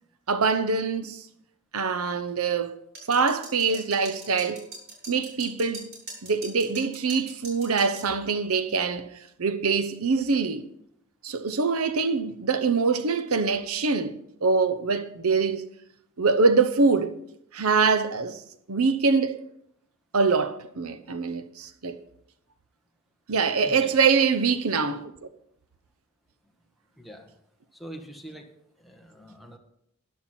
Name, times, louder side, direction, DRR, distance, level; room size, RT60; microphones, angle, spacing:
voice 1, 0.3-1.2 1.7-2.7 3.1-4.7 5.1-5.9 6.2-9.1 9.4-10.7 11.2-15.7 16.2-17.1 17.5-18.4 18.7-19.4 20.1-22.0 23.3-25.0, right 4 dB, 70° right, 0.8 m, -24 dB
sound 1, 3.0-8.1, right 2 dB, 50° right, 5.0 m, -42 dB
voice 2, 27.0-27.3 27.7-28.5 28.8-29.6, right 1 dB, ahead, 1.5 m, -44 dB
13.0 x 10.5 x 4.4 m
head